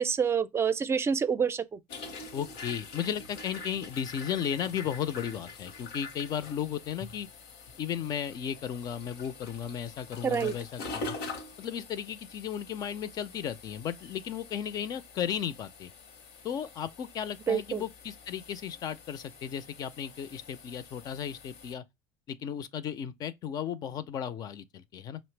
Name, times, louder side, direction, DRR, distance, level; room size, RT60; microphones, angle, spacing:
voice 1, 0.0-1.8 10.2-10.5 17.5-17.8, right 7 dB, 30° right, 0.4 m, -27 dB
sound 1, 1.9-21.7, left 3 dB, 80° left, 0.8 m, -45 dB
voice 2, 2.3-7.3 7.8-11.2 11.6-15.9 16.4-21.8 22.3-25.2, left 9 dB, 50° left, 0.5 m, -35 dB
5.4 x 2.0 x 3.2 m
supercardioid pair, 90°, 8 cm